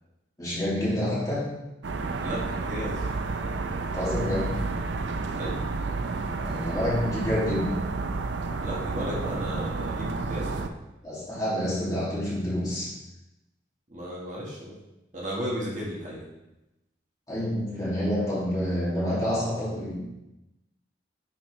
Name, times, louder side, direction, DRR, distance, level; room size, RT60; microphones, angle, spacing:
voice 1, 0.4-1.6 3.9-4.6 6.4-7.9 11.0-12.9 17.3-19.9, left 1 dB, 20° left, -8 dB, 2.4 m, -28 dB
sound 1, 1.8-10.7, right 3 dB, 80° right, 0.5 m, -31 dB
voice 2, 2.2-3.1 5.3-5.6 8.6-10.7 13.9-14.7 15.1-16.2, equal, 45° right, -5 dB, 1.6 m, -34 dB
9.0 x 4.3 x 3.2 m, 0.96 s
head